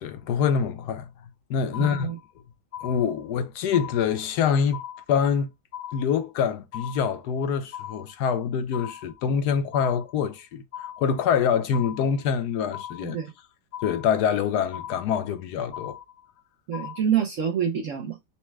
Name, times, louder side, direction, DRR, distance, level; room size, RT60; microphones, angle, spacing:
voice 1, 0.0-1.1 1.5-2.1 2.8-4.8 5.1-5.5 5.9-13.2 13.8-16.0, left 7 dB, 70° left, 1.0 m, -25 dB
sound 1, 1.7-2.4 2.7-3.4 3.7-4.4 4.7-5.4 5.7-6.4 6.7-7.4 7.7-8.4 8.7-9.4 9.7-10.4 10.7-11.4 11.7-12.4 12.7-13.4 13.7-14.4 14.7-15.4 15.7-16.4 16.7-17.0, left 10 dB, 40° left, 0.8 m, -39 dB
voice 2, 1.8-2.2 13.0-13.3 16.7-18.2, right 8 dB, 70° right, 0.7 m, -27 dB
4.2 x 2.1 x 4.5 m
omnidirectional pair, 2.0 m